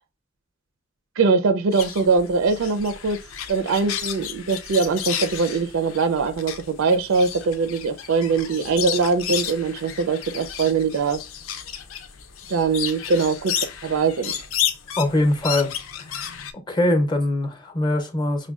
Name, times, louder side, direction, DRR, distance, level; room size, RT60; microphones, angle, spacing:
voice 1, 1.2-3.2 3.5-11.2 12.5-13.5 13.8-14.4, right 4 dB, 75° right, 0.4 m, -22 dB
sound 1, 1.7-16.5, left 9 dB, 90° left, 0.6 m, -32 dB
voice 2, 15.0-15.7 16.7-18.5, left 1 dB, 25° left, 0.6 m, -22 dB
6.1 x 2.2 x 2.3 m
head